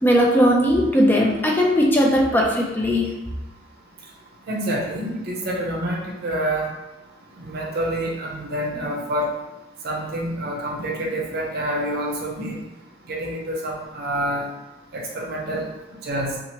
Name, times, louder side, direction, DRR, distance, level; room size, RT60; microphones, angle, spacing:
voice 1, 0.0-3.1, equal, 10° left, -2 dB, 0.4 m, -18 dB
voice 2, 4.5-6.7 7.4-9.3 9.8-12.6 13.1-14.5 14.9-15.7 16.0-16.4, right 1 dB, 55° right, -1 dB, 0.6 m, -27 dB
2.8 x 2.4 x 2.8 m, 1.0 s
head